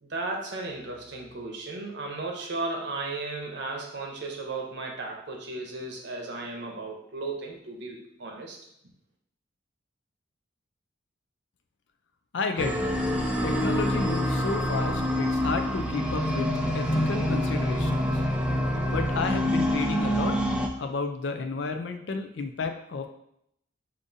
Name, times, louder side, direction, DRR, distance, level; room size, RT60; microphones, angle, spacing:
voice 1, 0.0-8.6, right 3 dB, 65° right, 1 dB, 0.7 m, -35 dB
voice 2, 12.3-13.0 13.4-16.5 16.7-18.2 18.9-20.4 20.8-23.1, left 4 dB, 65° left, 6 dB, 0.4 m, -32 dB
sound 1, 12.6-20.7, equal, 5° right, 0.3 m, -26 dB
4.9 x 2.6 x 2.6 m, 0.74 s
head